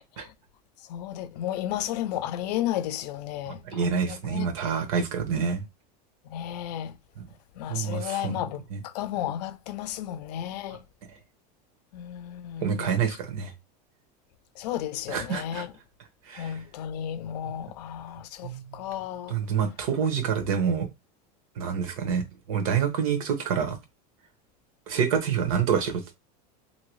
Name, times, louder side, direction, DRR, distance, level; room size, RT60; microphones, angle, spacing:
voice 1, 0.9-4.5 6.3-7.0 7.6-10.8 11.9-12.9 14.6-15.7 16.4-19.3, left 11 dB, 85° left, 0.5 m, -33 dB
voice 2, 3.5-5.6 7.2-7.3 7.7-8.4 8.7-8.8 12.6-13.5 15.1-15.7 16.3-16.5 18.4-18.8 19.3-20.9 21.6-23.8 24.9-26.1, right 7 dB, 60° right, 1.0 m, -27 dB
2.8 x 2.6 x 3.1 m
supercardioid pair, 165°, 20 cm